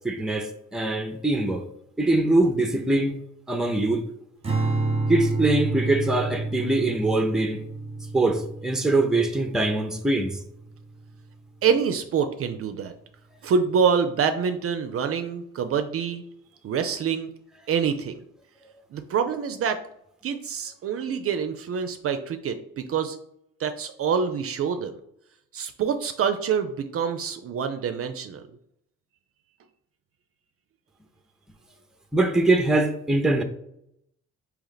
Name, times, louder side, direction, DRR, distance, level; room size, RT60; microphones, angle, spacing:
voice 1, 0.0-1.7 2.0-3.2 3.5-4.1 5.1-7.6 8.1-10.4 32.1-33.4, right 2 dB, ahead, 0.5 m, -23 dB
Strum, 4.4-10.8, right 3 dB, 20° right, 0.9 m, -29 dB
voice 2, 11.6-12.9 13.4-16.2 16.6-17.3 17.7-18.2 18.9-19.8 20.2-23.2 23.6-24.9 25.5-28.4, right 6 dB, 50° right, 0.4 m, -26 dB
3.1 x 2.9 x 3.9 m
cardioid pair, 90°, 30 cm